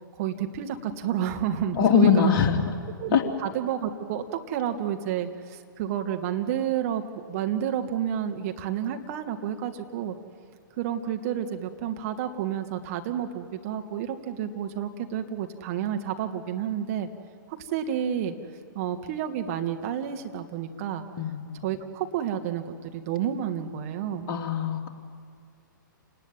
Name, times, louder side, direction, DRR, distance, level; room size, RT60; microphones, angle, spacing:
voice 1, 0.2-2.3 3.0-7.0 7.3-10.2 10.8-17.1 17.5-18.3 18.7-21.0 21.6-24.3, right 9 dB, 45° right, 6 dB, 2.2 m, -30 dB
voice 2, 1.7-2.7 3.1-3.2 21.2-21.6 24.3-24.9, left 7 dB, 35° left, 2 dB, 3.0 m, -22 dB
28.0 x 19.0 x 9.3 m, 2.1 s
figure-of-eight pair, 115°, 11 cm